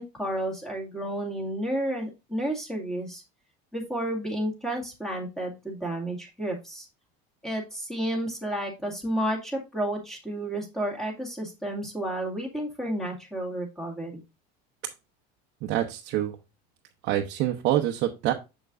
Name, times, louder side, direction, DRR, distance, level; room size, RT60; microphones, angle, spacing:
voice 1, 0.0-3.2 3.7-6.9 7.4-14.2, right 1 dB, ahead, -1 dB, 2.1 m, -31 dB
voice 2, 15.6-16.3 17.0-18.3, right 12 dB, 50° right, 2 dB, 0.9 m, -26 dB
7.5 x 7.0 x 2.5 m, 0.26 s
cardioid pair, 165°, 21 cm